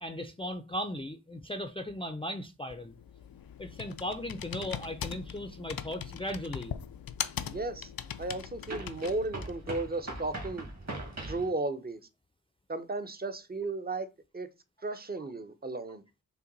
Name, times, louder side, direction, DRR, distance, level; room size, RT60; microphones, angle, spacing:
voice 1, 0.0-2.9 3.6-6.7, left 1 dB, 15° left, 0.5 m, -37 dB
Computer keyboard, 2.7-9.7, left 9 dB, 75° left, 0.5 m, -40 dB
sound 1, 6.2-6.3 8.7-11.5, right 2 dB, 45° right, 1.8 m, -40 dB
voice 2, 7.5-7.9 8.2-10.7 11.3-12.0 12.7-14.1 14.3-14.5 14.8-16.0, right 2 dB, 25° right, 0.6 m, -34 dB
5.6 x 2.2 x 3.9 m
cardioid pair, 45°, 36 cm